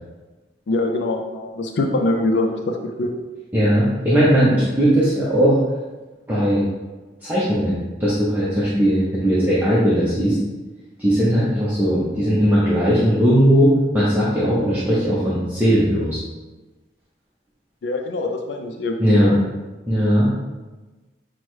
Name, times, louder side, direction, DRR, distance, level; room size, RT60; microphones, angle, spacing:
voice 1, 0.7-3.1 17.8-19.4, left 2 dB, 80° left, 4 dB, 0.4 m, -23 dB
voice 2, 3.5-5.6 6.3-6.6 7.2-10.4 11.0-16.2 19.0-19.3 19.9-20.3, equal, 10° right, -10 dB, 0.7 m, -18 dB
6.1 x 2.2 x 3.1 m, 1.2 s
head